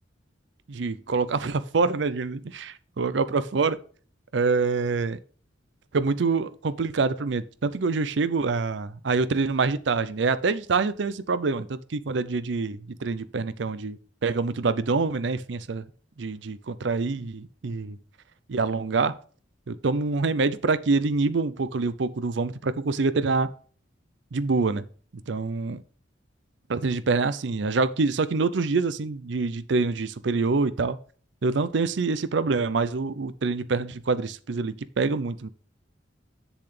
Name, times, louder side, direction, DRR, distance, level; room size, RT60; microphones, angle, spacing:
voice 1, 0.7-3.8 4.3-5.2 5.9-14.0 14.2-15.8 16.2-18.0 18.5-19.1 19.7-23.5 24.3-24.8 25.3-25.8 26.7-31.0 31.4-35.5, right 4 dB, 70° right, 0.5 m, -26 dB
7.8 x 7.1 x 3.2 m
head